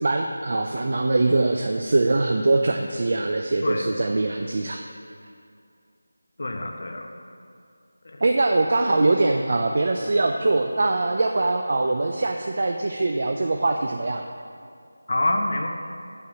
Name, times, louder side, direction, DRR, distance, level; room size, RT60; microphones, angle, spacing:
voice 1, 0.0-4.8 8.2-14.2, right 2 dB, 40° right, 4 dB, 0.5 m, -22 dB
voice 2, 3.6-3.9 6.4-7.1 8.0-8.2 15.1-15.7, left 1 dB, 50° left, 2 dB, 1.0 m, -26 dB
8.0 x 5.6 x 7.7 m, 2.4 s
figure-of-eight pair, 175°, 0 cm